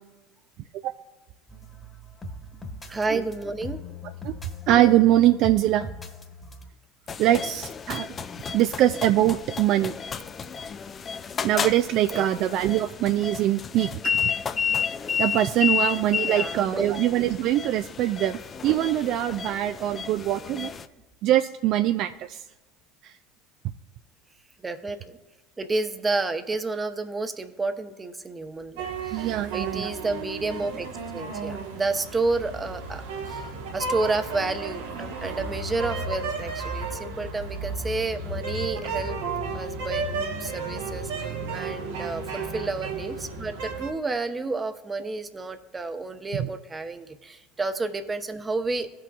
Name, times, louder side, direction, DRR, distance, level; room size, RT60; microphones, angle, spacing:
sound 1, 1.5-6.7, left 3 dB, 15° left, 1.4 m, -41 dB
voice 1, 2.9-3.8 7.2-7.3 12.1-12.3 16.3-16.8 24.6-25.2 25.6-33.0 33.3-33.4 33.7-39.2 39.5-48.9, right 3 dB, 20° right, 8 dB, 0.9 m, -30 dB
voice 2, 4.7-5.9 7.2-8.1 8.5-9.9 11.4-14.2 15.2-20.7 21.2-22.4 29.1-29.9 46.4-46.5, right 13 dB, 60° right, 9 dB, 0.3 m, -23 dB
sound 2, 7.1-20.9, left 7 dB, 35° left, 0.4 m, -31 dB
sound 3, 28.8-43.9, right 4 dB, 80° right, 1.2 m, -33 dB
17.0 x 5.9 x 2.4 m, 1.2 s
hypercardioid pair, 80°, 0 cm